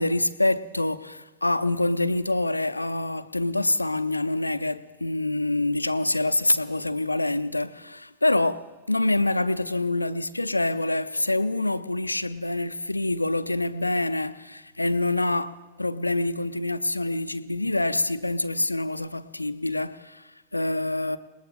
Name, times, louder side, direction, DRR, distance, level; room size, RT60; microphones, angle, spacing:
voice 1, 0.0-21.2, left 2 dB, 85° left, 0.6 m, -26 dB
28.5 x 19.5 x 2.5 m
figure-of-eight pair, 90°, 0 cm